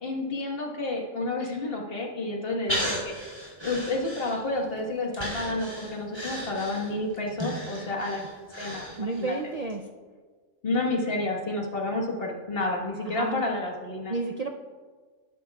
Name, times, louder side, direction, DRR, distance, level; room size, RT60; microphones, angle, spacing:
voice 1, 0.0-3.1 3.6-8.8 9.2-9.3 10.6-14.1, left 2 dB, 50° left, 0 dB, 1.6 m, -30 dB
Breathing, 2.7-4.7 5.1-9.3 9.7-9.8, equal, 20° right, 3.4 m, -35 dB
voice 2, 9.0-10.0 13.0-13.5 14.1-14.5, right 3 dB, 50° right, 3 dB, 0.5 m, -31 dB
19.5 x 10.0 x 2.3 m, 1.5 s
omnidirectional pair, 1.3 m